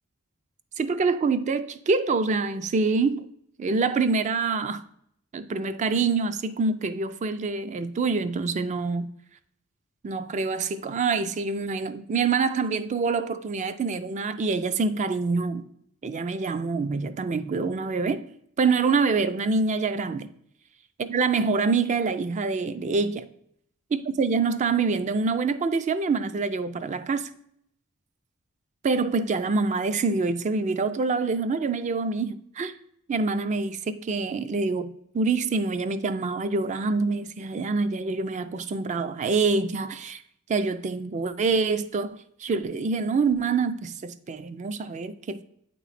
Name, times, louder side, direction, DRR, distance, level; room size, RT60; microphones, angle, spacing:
voice 1, 0.8-3.3 3.6-4.8 5.3-9.1 10.0-15.6 16.0-18.2 18.6-20.3 21.0-23.3 23.9-27.3 28.8-32.7 33.1-34.9 35.1-40.2 40.5-42.1 42.4-45.4, right 4 dB, 35° right, 0.3 m, -26 dB
9.0 x 3.0 x 4.1 m
head